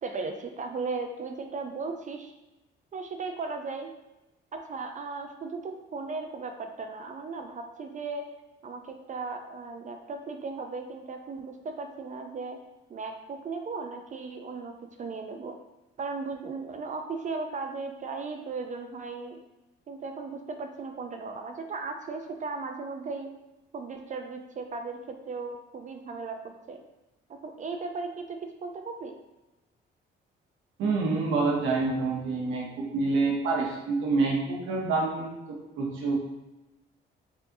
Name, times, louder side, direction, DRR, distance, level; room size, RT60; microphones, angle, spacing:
voice 1, 0.0-2.3 2.9-3.9 4.5-8.3 8.6-12.6 12.9-14.7 15.0-15.6 16.0-19.4 19.9-23.3 23.7-26.8 27.3-29.1, right 4 dB, 40° right, 4 dB, 0.4 m, -36 dB
voice 2, 30.8-36.1, right 3 dB, 85° right, -2 dB, 0.8 m, -27 dB
4.6 x 2.6 x 2.6 m, 1.0 s
cardioid pair, 90°, 20 cm